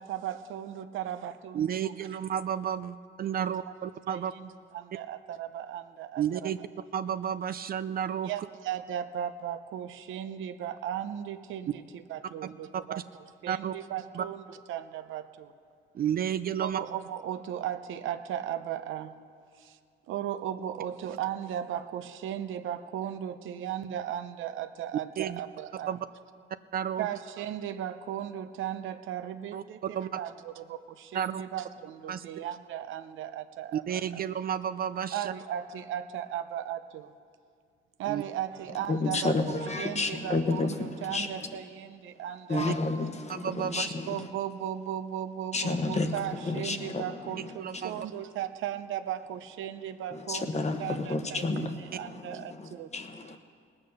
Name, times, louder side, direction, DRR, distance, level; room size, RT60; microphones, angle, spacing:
voice 1, 0.0-1.9 4.1-6.5 8.2-13.0 13.4-15.5 16.6-19.1 19.6-19.8 20.1-26.0 27.0-34.2 35.1-37.1 38.0-40.7 41.0-42.8 44.1-52.9, right 10 dB, 80° right, 10 dB, 0.7 m, -36 dB
voice 2, 1.5-4.3 6.2-6.6 6.9-8.3 13.5-13.7 14.1-14.2 15.9-16.8 25.2-25.4 25.9-26.0 26.7-27.1 29.5-29.6 29.9-30.2 31.1-31.4 32.1-32.2 33.7-35.3 38.1-38.2 42.5-42.7 43.3-43.9 47.4-48.0, right 9 dB, 50° right, 12 dB, 0.4 m, -31 dB
voice 3, 38.9-41.6 42.5-44.3 45.5-48.0 50.1-53.4, left 3 dB, 35° left, 7 dB, 1.2 m, -31 dB
18.5 x 8.7 x 6.5 m, 2.2 s
cardioid pair, 90°, 20 cm